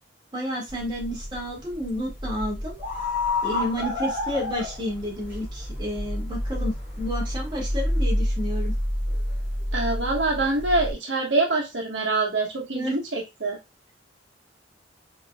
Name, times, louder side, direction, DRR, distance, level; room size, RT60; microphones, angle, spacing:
voice 1, 0.3-2.8 3.4-8.7 12.7-13.0, equal, 25° right, -3 dB, 2.1 m, -31 dB
sound 1, 0.7-10.9, left 1 dB, 10° right, 3.1 m, -29 dB
voice 2, 9.7-13.6, right 2 dB, 80° right, 0 dB, 1.4 m, -25 dB
5.3 x 3.8 x 2.3 m, 0.21 s
head